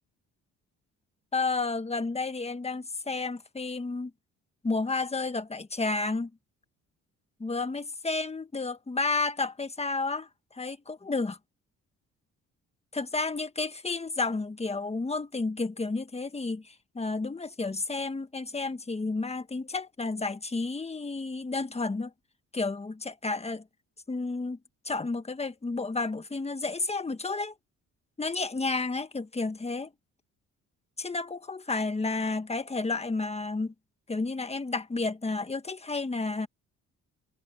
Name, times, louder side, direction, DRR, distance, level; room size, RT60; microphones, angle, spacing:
voice 1, 1.3-4.1 4.6-6.3 7.4-11.4 12.9-22.1 22.5-23.6 24.1-24.6 24.8-27.5 28.2-29.9 31.0-33.7 34.1-36.5, left 3 dB, 20° left, 1.6 m, -31 dB
cardioid pair, 90°, 30 cm